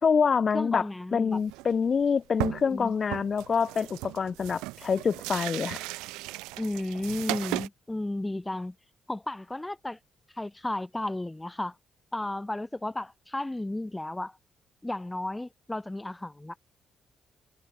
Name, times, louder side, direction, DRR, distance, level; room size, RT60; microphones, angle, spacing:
voice 1, 0.0-0.8 1.1-5.8, left 6 dB, 45° left, 1.2 m, -26 dB
voice 2, 0.5-1.4 2.7-2.9 6.6-8.7 9.1-10.0 10.4-11.7 12.1-14.3 14.8-16.5, left 1 dB, 15° left, 1.8 m, -33 dB
sound 1, 1.4-1.7 2.0-2.1 2.4-2.8 3.1-7.7, right 22 dB, 70° right, 1.9 m, -36 dB
figure-of-eight pair, 40°, 0 cm